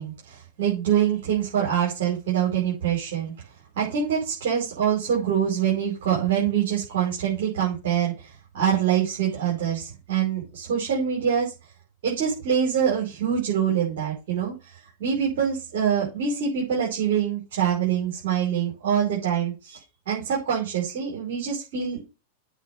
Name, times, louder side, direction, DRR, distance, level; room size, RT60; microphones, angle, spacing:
voice 1, 0.0-3.3 3.8-11.5 12.0-14.5 15.0-19.8 20.1-22.1, right 8 dB, 55° right, -5 dB, 5.4 m, -25 dB
8.3 x 5.8 x 6.9 m, 0.28 s
figure-of-eight pair, 90°, 0 cm